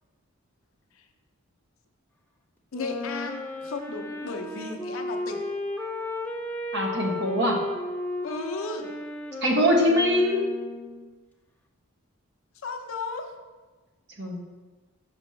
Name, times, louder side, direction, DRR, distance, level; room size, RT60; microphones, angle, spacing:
voice 1, 2.7-5.4 8.2-8.9 12.6-13.3, left 3 dB, 70° left, 5 dB, 0.6 m, -34 dB
Wind instrument woodwind instrument, 2.7-11.1, left 2 dB, 5° left, 0.3 m, -34 dB
voice 2, 6.7-7.6 9.4-10.4 14.2-14.4, equal, 50° right, 0 dB, 1.0 m, -22 dB
6.0 x 5.2 x 3.1 m, 1.3 s
head